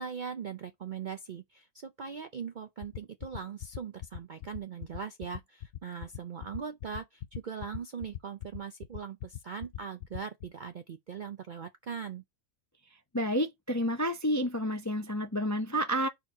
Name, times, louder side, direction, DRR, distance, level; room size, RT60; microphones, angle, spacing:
voice 1, 0.0-12.2, right 6 dB, 60° right, 0.5 m, -40 dB
sound 1, 2.8-10.5, left 11 dB, 60° left, 0.6 m, -39 dB
voice 2, 13.1-16.1, equal, 25° left, 0.4 m, -30 dB
4.4 x 4.0 x 5.3 m
omnidirectional pair, 1.4 m